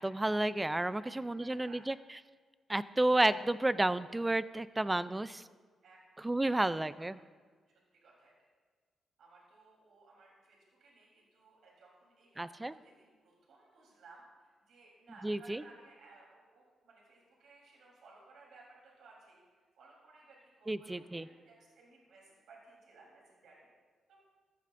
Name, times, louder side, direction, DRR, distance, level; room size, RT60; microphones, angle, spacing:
voice 1, 0.0-2.0 2.7-5.4 6.2-7.2 12.4-12.7 15.2-15.6 20.7-21.3, right 2 dB, 10° right, 15 dB, 0.3 m, -31 dB
voice 2, 1.0-1.9 4.7-5.3 5.8-6.0 6.4-7.2 7.9-8.3 9.2-23.7 24.1-24.2, right 3 dB, 70° right, -3 dB, 3.5 m, -60 dB
15.0 x 14.0 x 2.6 m, 1.5 s
cardioid pair, 135°, 0 cm